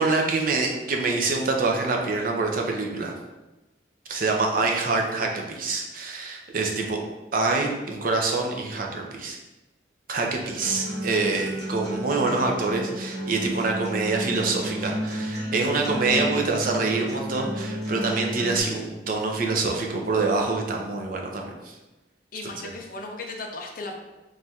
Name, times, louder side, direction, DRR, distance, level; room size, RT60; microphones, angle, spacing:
voice 1, 0.0-3.1 4.1-7.0 7.3-9.4 10.1-21.7, right 3 dB, 50° right, 1 dB, 0.5 m, -26 dB
Acoustic guitar, 10.6-18.6, equal, 65° right, 1.4 m, -32 dB
voice 2, 22.3-24.0, left 3 dB, 50° left, 2 dB, 0.5 m, -36 dB
3.2 x 2.3 x 4.1 m, 1.1 s
head